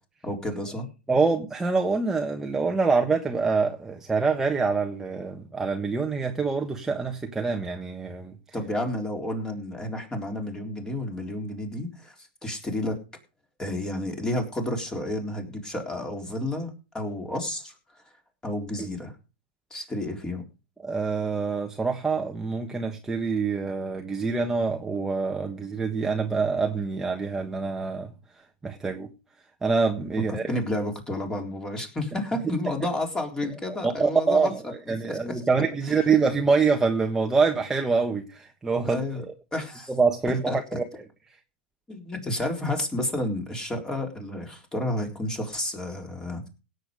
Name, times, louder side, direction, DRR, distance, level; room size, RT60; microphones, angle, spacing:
voice 1, 0.2-0.9 8.5-12.1 12.4-13.0 13.6-17.7 18.4-19.2 19.7-20.4 30.3-34.5 35.0-35.4 35.9-36.0 38.8-39.3 39.5-39.9 40.5-40.8 41.9-46.5, left 1 dB, 10° left, 3.8 m, -31 dB
voice 2, 1.1-8.3 18.8-18.9 20.8-28.1 28.6-29.1 29.6-30.4 34.0-39.0 39.9-40.8, right 4 dB, 10° right, 1.4 m, -25 dB
17.0 x 8.0 x 5.3 m
hypercardioid pair, 140°, 6 cm